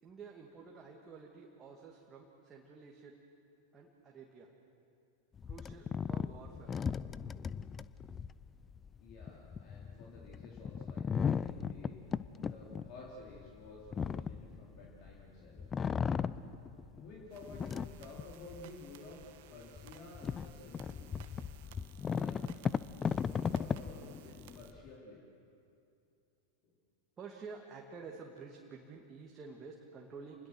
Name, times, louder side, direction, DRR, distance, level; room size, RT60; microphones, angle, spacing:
voice 1, 0.0-3.2 3.7-4.5 5.5-6.7 27.2-30.5, right 5 dB, 20° right, 0 dB, 2.5 m, -50 dB
sound 1, 5.4-15.2 15.6-17.0 17.4-18.7 19.2-19.3 19.8-24.9, left 6 dB, 20° left, 0.6 m, -37 dB
voice 2, 9.0-12.0 12.4-15.6 16.9-19.2 19.5-21.1 22.1-22.5 23.4-25.2 26.6-26.8, left 2 dB, 40° left, -4 dB, 4.4 m, -52 dB
sound 2, 17.3-24.7, right 12 dB, 50° right, 1.4 m, -59 dB
29.5 x 21.0 x 6.4 m, 2.6 s
figure-of-eight pair, 90°, 0 cm